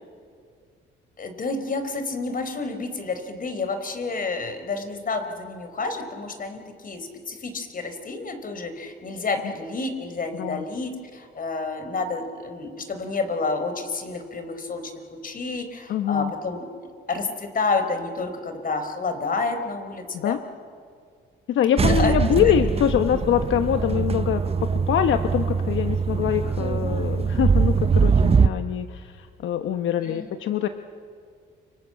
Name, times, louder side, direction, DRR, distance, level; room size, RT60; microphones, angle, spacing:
voice 1, 1.2-16.6 17.1-20.4 21.7-22.2 30.0-30.3, left 3 dB, 45° left, 7 dB, 4.4 m, -29 dB
voice 2, 10.3-10.6 15.9-16.3 20.1-20.4 21.5-30.7, left 10 dB, 75° left, 8 dB, 1.1 m, -24 dB
sound 1, 21.8-28.5, right 5 dB, 30° right, 0.8 m, -22 dB
29.5 x 25.5 x 7.9 m, 2.2 s
cardioid pair, 90°, 20 cm